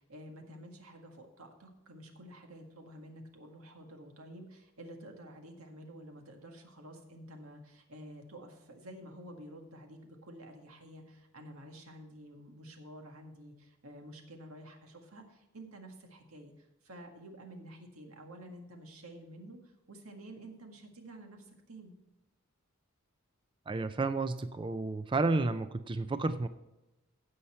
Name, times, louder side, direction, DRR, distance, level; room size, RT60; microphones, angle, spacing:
voice 1, 0.0-21.9, right 1 dB, 90° right, 3 dB, 1.8 m, -50 dB
voice 2, 23.7-26.5, right 3 dB, 25° right, 11 dB, 0.4 m, -31 dB
16.0 x 5.7 x 4.4 m, 0.98 s
head